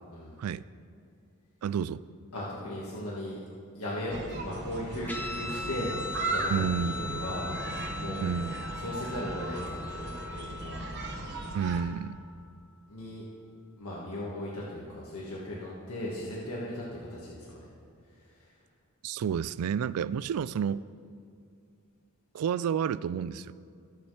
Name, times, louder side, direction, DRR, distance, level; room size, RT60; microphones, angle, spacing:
voice 1, 0.1-0.4 2.3-3.4 3.7-8.3 8.8-10.8 12.9-13.2 13.8-17.6 18.1-18.5, left 1 dB, 80° left, -6 dB, 1.6 m, -37 dB
voice 2, 1.6-2.0 6.5-6.9 8.2-8.5 11.5-12.2 19.0-20.8 22.3-23.5, right 7 dB, 80° right, 18 dB, 0.3 m, -30 dB
sound 1, 4.1-11.8, right 2 dB, 50° right, 1.0 m, -37 dB
Guitar, 5.1-12.0, left 3 dB, 10° left, 0.9 m, -40 dB
19.0 x 7.2 x 3.3 m, 2.4 s
head